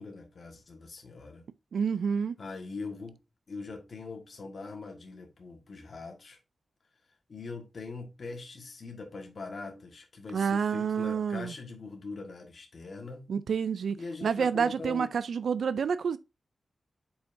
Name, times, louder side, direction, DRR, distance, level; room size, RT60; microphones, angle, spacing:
voice 1, 0.0-1.4 2.4-3.2 3.5-6.4 7.3-13.3 13.9-15.2, left 3 dB, 45° left, 1.6 m, -42 dB
voice 2, 1.7-2.4 10.3-11.5 13.3-16.2, right 6 dB, 85° right, 0.4 m, -29 dB
7.8 x 5.6 x 2.6 m
wide cardioid pair, 160°, 0 cm